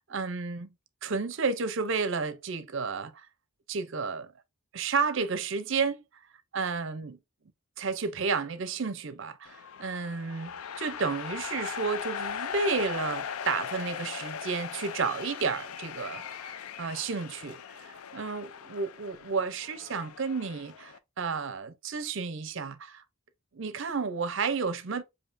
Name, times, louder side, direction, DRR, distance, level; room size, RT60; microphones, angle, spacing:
voice 1, 0.1-0.7 1.0-3.3 3.7-4.3 4.7-6.0 6.5-7.2 7.8-23.0 23.5-25.0, right 4 dB, 60° right, 0.5 m, -32 dB
sound 1, 9.4-21.0, left 8 dB, 90° left, 0.4 m, -39 dB
7.0 x 2.7 x 2.5 m
head